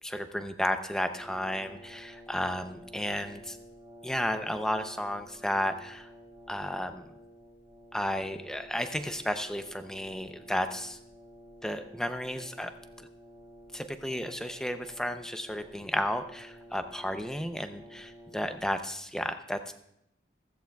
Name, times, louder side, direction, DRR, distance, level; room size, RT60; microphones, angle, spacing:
voice 1, 0.0-3.6 4.0-6.1 6.5-7.1 7.9-11.0 11.6-12.7 13.7-19.7, equal, 5° left, 8 dB, 0.6 m, -33 dB
Brass instrument, 1.0-18.8, equal, 20° right, 2.6 m, -52 dB
15.0 x 14.0 x 2.3 m, 0.77 s
head